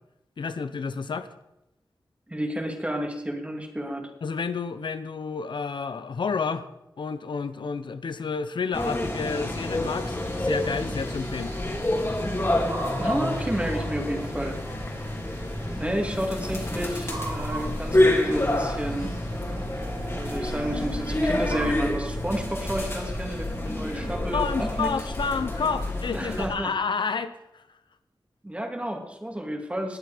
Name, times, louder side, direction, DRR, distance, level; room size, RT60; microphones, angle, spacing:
voice 1, 0.4-1.3 4.2-6.7 7.0-11.5 24.3-27.6, left 5 dB, 80° left, 11 dB, 0.7 m, -30 dB
voice 2, 2.3-4.1 13.0-14.6 15.7-19.1 20.1-24.9 26.1-26.7 28.4-30.0, equal, 15° right, 3 dB, 2.5 m, -31 dB
sound 1, 8.7-26.5, left 1 dB, 30° left, 2.9 m, -28 dB
sound 2, 9.8-21.7, right 2 dB, 85° right, 6.4 m, -41 dB
19.5 x 7.9 x 5.0 m, 0.89 s
wide cardioid pair, 70°, 8 cm